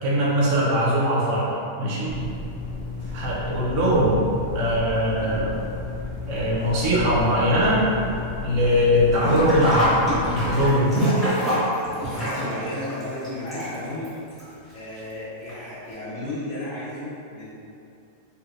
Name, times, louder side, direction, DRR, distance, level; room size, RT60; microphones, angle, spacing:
voice 1, 0.0-1.5 1.8-2.1 3.1-4.2 4.5-5.6 6.3-7.8 8.4-9.9 10.3-11.0, equal, 75° right, -6 dB, 1.1 m, -21 dB
sound 1, 2.1-10.7, left 3 dB, 80° left, 1.3 m, -33 dB
Sink (filling or washing), 9.1-14.1 14.4-14.5 15.5-15.6 15.9-16.0, equal, ahead, 1.1 m, -25 dB
voice 2, 12.0-14.1 14.7-17.5, left 1 dB, 55° left, -10 dB, 1.1 m, -33 dB
3.2 x 3.2 x 2.5 m, 2.7 s
omnidirectional pair, 1.3 m